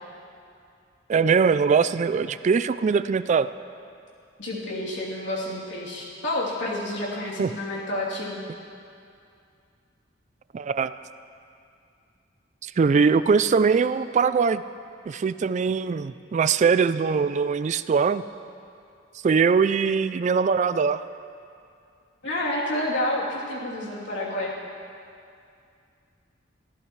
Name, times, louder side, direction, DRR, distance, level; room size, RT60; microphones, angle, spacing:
voice 1, 1.1-3.5 7.4-7.5 10.5-10.9 12.6-14.6 15.1-18.2 19.2-21.1, right 5 dB, 40° right, 14 dB, 0.3 m, -22 dB
voice 2, 4.4-8.4 22.2-24.5, left 1 dB, 65° left, -5 dB, 3.1 m, -29 dB
25.0 x 14.5 x 3.2 m, 2.5 s
head